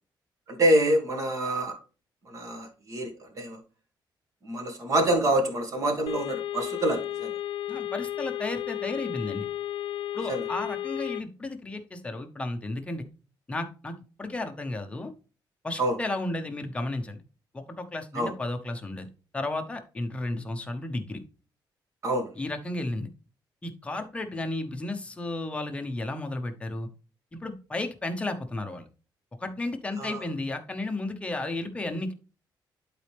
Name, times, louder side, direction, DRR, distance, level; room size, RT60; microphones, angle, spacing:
voice 1, 0.5-1.7 2.2-3.6 4.4-7.3 10.3-10.4 15.8-16.0 18.1-18.3 22.0-22.3 30.0-30.2, right 1 dB, 40° right, 4 dB, 1.8 m, -26 dB
sound 1, 6.1-11.2, left 13 dB, 85° left, 0.4 m, -33 dB
voice 2, 7.7-9.5 10.1-13.0 13.5-15.1 15.6-17.2 17.5-19.1 19.3-21.2 22.4-23.1 23.6-26.9 27.3-28.9 29.4-32.1, left 2 dB, 15° left, 5 dB, 0.8 m, -33 dB
11.5 x 4.2 x 3.3 m, 0.36 s
wide cardioid pair, 175°, 8 cm